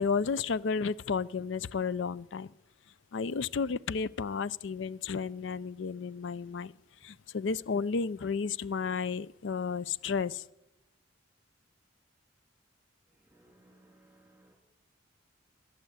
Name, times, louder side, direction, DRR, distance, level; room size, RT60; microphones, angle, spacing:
voice 1, 0.0-2.5 3.1-6.7 7.0-10.4, left 5 dB, 65° left, 19 dB, 0.4 m, -32 dB
voice 2, 13.1-14.5, right 1 dB, 10° right, 2 dB, 3.3 m, -62 dB
21.0 x 8.1 x 8.0 m, 0.94 s
head